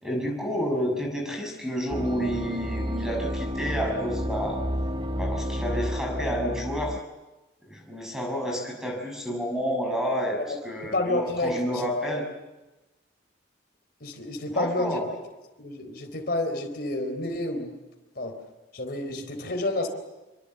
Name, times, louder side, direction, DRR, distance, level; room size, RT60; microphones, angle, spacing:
voice 1, 0.0-4.6 5.2-7.0 7.7-10.4 10.6-12.2 14.5-15.0, equal, 5° right, 1 dB, 6.4 m, -30 dB
sound 1, 1.9-7.0, equal, 25° right, 0.8 m, -31 dB
voice 2, 10.8-11.8 14.0-15.0 15.6-17.7 18.2-18.3 18.7-19.9, left 2 dB, 55° left, 2 dB, 4.0 m, -29 dB
26.0 x 25.0 x 7.9 m, 1.1 s
head